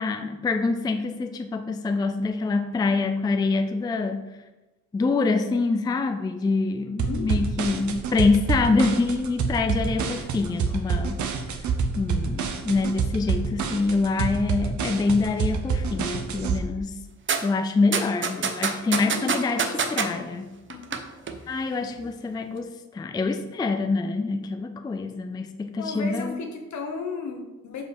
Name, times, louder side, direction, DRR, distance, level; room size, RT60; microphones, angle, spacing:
voice 1, 0.0-4.3 4.9-11.2 11.5-11.6 12.0-17.0 17.4-20.5 21.5-26.4, left 3 dB, 15° left, 7 dB, 0.3 m, -25 dB
voice 2, 6.8-7.3 18.4-18.5 18.9-20.2 20.7-21.0 21.4-21.7 25.8-27.8, left 4 dB, 75° left, 3 dB, 1.3 m, -35 dB
sound 1, 7.0-16.6, right 5 dB, 75° right, 0.8 m, -27 dB
sound 2, 17.3-17.4 17.9-20.1 20.7-21.0 21.3-21.4, right 6 dB, 40° right, 0.7 m, -24 dB
5.4 x 5.0 x 6.2 m, 1.1 s
wide cardioid pair, 165°, 29 cm